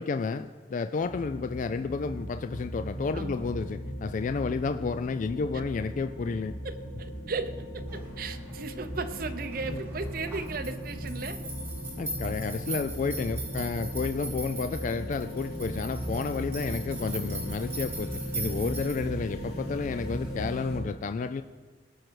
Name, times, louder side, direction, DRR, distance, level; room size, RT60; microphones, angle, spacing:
voice 1, 0.0-6.6 9.7-9.8 12.0-21.4, left 4 dB, 45° left, 9 dB, 0.3 m, -31 dB
sound 1, 1.0-20.8, equal, 65° left, 4.3 m, -37 dB
voice 2, 6.6-11.4, right 3 dB, 55° right, 9 dB, 0.8 m, -36 dB
sound 2, 7.9-19.0, right 2 dB, 15° right, 3.2 m, -41 dB
18.0 x 6.3 x 4.6 m, 1.5 s
head